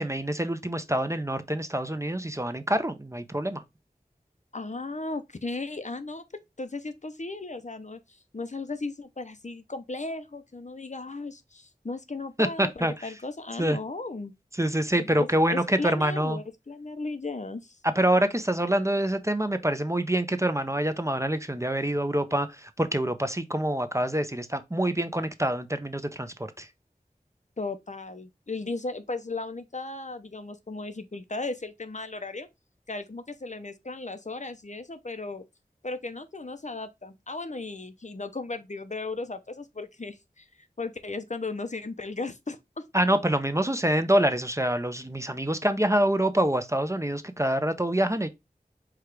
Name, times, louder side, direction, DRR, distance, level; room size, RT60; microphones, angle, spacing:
voice 1, 0.0-3.6 12.4-12.9 13.6-13.8 14.6-16.4 17.8-26.7 42.9-48.3, right 1 dB, 20° right, 0.5 m, -26 dB
voice 2, 4.5-6.2 6.6-14.3 15.0-17.8 27.6-32.5 32.9-35.4 35.8-42.8, left 3 dB, 50° left, 0.6 m, -36 dB
4.9 x 2.4 x 4.5 m
wide cardioid pair, 45°, 16 cm